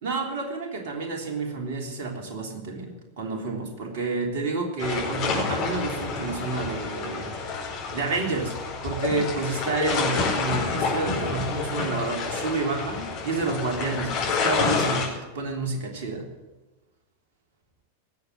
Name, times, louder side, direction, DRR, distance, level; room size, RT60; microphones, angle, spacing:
voice 1, 0.0-7.6 7.9-8.5 8.8-16.3, right 3 dB, 50° right, 3 dB, 3.3 m, -30 dB
sound 1, 4.8-15.1, left 4 dB, 40° left, 5.0 m, -28 dB
18.5 x 7.9 x 8.3 m, 1.2 s
figure-of-eight pair, 90°, 0 cm